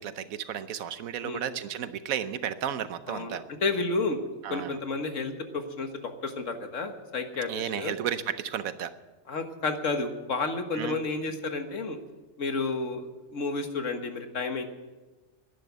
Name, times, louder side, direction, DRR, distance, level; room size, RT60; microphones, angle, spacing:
voice 1, 0.0-3.4 4.4-4.8 7.5-8.9 10.7-11.0, right 9 dB, 90° right, 12 dB, 1.2 m, -33 dB
voice 2, 3.1-4.2 4.5-7.9 9.3-12.0 12.4-14.6, left 3 dB, 65° left, 6 dB, 1.8 m, -31 dB
11.0 x 10.5 x 9.4 m, 1.2 s
omnidirectional pair, 1.4 m